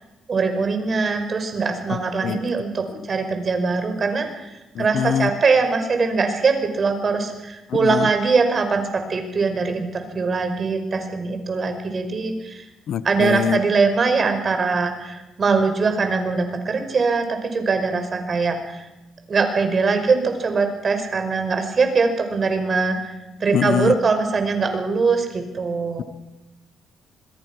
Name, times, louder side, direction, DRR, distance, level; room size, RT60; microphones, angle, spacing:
voice 1, 0.3-4.5 4.8-12.6 13.0-18.9 19.3-23.2 23.4-26.0, right 4 dB, 40° right, 6 dB, 5.3 m, -22 dB
voice 2, 2.2-2.5 4.7-5.3 7.8-8.1 12.9-13.6 23.5-23.9, left 9 dB, 70° left, 16 dB, 0.9 m, -23 dB
26.0 x 21.0 x 6.3 m, 0.98 s
cardioid pair, 90°, 0 cm